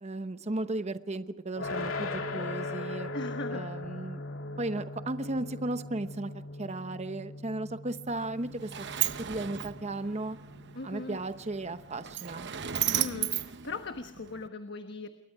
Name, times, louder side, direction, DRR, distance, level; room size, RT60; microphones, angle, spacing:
voice 1, 0.0-3.1 3.5-4.2 4.6-8.7 9.3-10.4 10.8-12.5, right 2 dB, 35° right, 10 dB, 0.9 m, -35 dB
sound 1, 1.6-12.5, left 2 dB, 90° left, 2.5 m, -40 dB
voice 2, 3.1-3.7 10.7-11.2 12.9-15.1, left 3 dB, 60° left, 7 dB, 1.3 m, -39 dB
Sliding door, 8.1-14.5, right 11 dB, 60° right, 0.9 m, -35 dB
28.0 x 22.5 x 4.8 m, 0.82 s
head